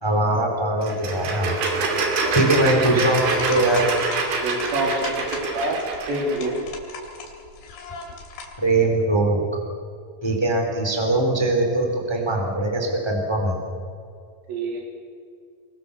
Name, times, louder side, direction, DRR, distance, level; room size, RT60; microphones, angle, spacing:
voice 1, 0.0-1.5 2.3-3.8 8.6-9.4 10.2-13.6, right 2 dB, 5° left, 1 dB, 3.0 m, -21 dB
sound 1, 0.8-6.5, right 3 dB, 75° right, 5.1 m, -26 dB
sound 2, 3.3-8.6, left 4 dB, 75° left, 5.0 m, -37 dB
voice 2, 4.4-5.8 6.1-6.6 14.5-14.8, right 2 dB, 55° right, 0 dB, 5.3 m, -26 dB
24.5 x 22.5 x 6.9 m, 2.2 s
omnidirectional pair, 5.3 m